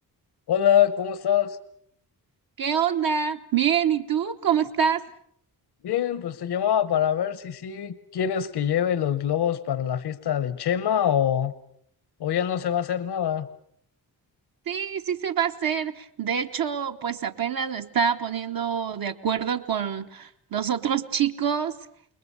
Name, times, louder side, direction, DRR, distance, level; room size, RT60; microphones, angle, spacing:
voice 1, 0.5-1.6 5.8-11.5 12.2-13.5, left 9 dB, 75° left, 15 dB, 1.1 m, -24 dB
voice 2, 2.6-5.0 14.7-21.7, right 8 dB, 60° right, 6 dB, 1.0 m, -26 dB
29.0 x 21.0 x 6.9 m, 0.68 s
wide cardioid pair, 180°, 39 cm